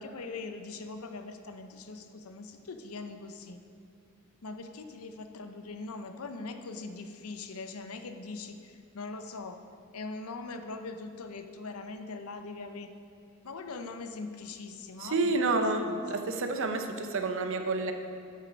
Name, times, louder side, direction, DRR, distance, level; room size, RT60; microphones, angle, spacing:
voice 1, 0.0-3.6 4.4-9.6 9.9-12.9 13.4-16.2, left 3 dB, 85° left, 8 dB, 0.7 m, -41 dB
voice 2, 15.0-17.9, right 3 dB, 65° right, 6 dB, 0.7 m, -29 dB
10.0 x 6.6 x 5.2 m, 2.4 s
head